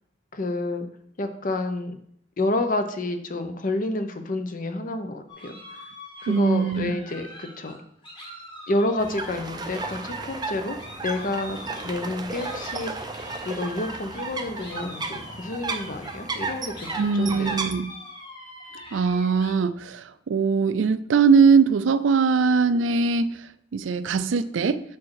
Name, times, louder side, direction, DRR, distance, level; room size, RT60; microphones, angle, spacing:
voice 1, 0.3-0.9 1.2-2.0 2.4-5.5 6.2-7.8 8.7-11.6 11.8-13.1 13.4-17.6, left 2 dB, 45° left, 8 dB, 0.7 m, -29 dB
sound 1, 5.3-19.5, left 1 dB, 25° left, 1.7 m, -43 dB
voice 2, 6.3-6.9 17.0-17.9 18.9-23.3 23.7-24.8, right 5 dB, 75° right, 13 dB, 0.4 m, -21 dB
sound 2, 9.0-17.7, right 3 dB, 20° right, 0.5 m, -34 dB
7.2 x 4.4 x 4.7 m, 0.69 s
head